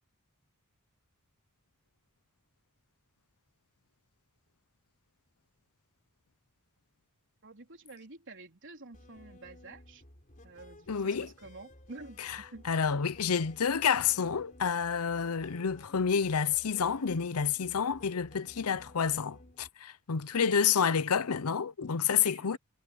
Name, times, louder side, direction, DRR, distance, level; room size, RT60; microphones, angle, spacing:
voice 1, 7.4-10.0 10.4-12.7 22.0-22.6, right 2 dB, 60° right, 3.9 m, -49 dB
sound 1, 8.9-19.7, left 1 dB, 40° left, 4.0 m, -55 dB
voice 2, 10.9-11.3 12.6-22.6, left 7 dB, 80° left, 0.7 m, -29 dB
head